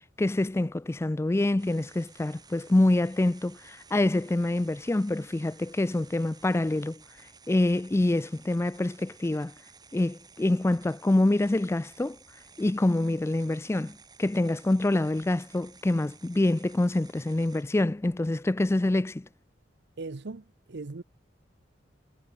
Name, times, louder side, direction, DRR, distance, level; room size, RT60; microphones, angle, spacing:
voice 1, 0.2-7.0 7.5-9.5 9.9-12.2 12.6-19.3, left 2 dB, 15° left, 0.4 m, -26 dB
sound 1, 1.6-17.6, right 5 dB, 20° right, 1.9 m, -55 dB
voice 2, 20.0-21.0, right 3 dB, 65° right, 0.8 m, -39 dB
head